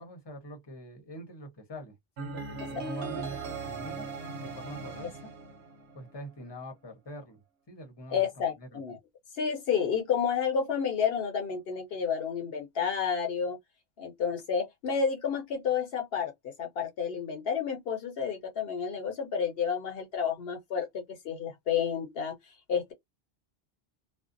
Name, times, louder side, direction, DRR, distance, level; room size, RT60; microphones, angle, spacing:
voice 1, 0.0-4.1 4.4-5.3 5.9-7.4 7.7-8.8, equal, 25° left, 0.7 m, -44 dB
sound 1, 2.2-6.2, right 4 dB, 85° right, 1.0 m, -39 dB
voice 2, 8.1-9.0 9.4-13.6 14.0-22.3 22.7-22.9, left 7 dB, 70° left, 0.8 m, -30 dB
2.5 x 2.0 x 2.5 m
omnidirectional pair, 1.1 m